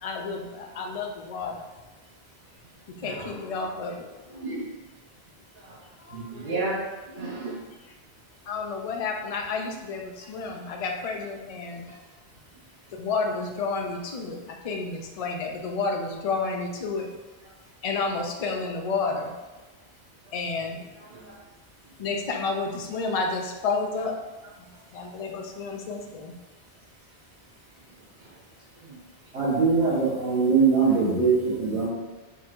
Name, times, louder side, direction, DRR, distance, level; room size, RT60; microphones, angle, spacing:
voice 1, 0.0-1.6 3.0-4.4 8.5-11.9 13.0-17.1 17.8-19.3 20.3-20.8 22.0-24.1 24.9-26.3, left 4 dB, 45° left, 2 dB, 0.5 m, -30 dB
voice 2, 3.0-3.6 4.3-4.7 5.5-6.8 7.1-7.6 18.5-18.6 20.9-21.4 28.2-28.4 28.8-29.0, right 2 dB, 55° right, -8 dB, 0.9 m, -35 dB
voice 3, 29.3-31.9, right 5 dB, 85° right, -10 dB, 1.6 m, -22 dB
4.5 x 4.0 x 2.5 m, 1.1 s
omnidirectional pair, 1.1 m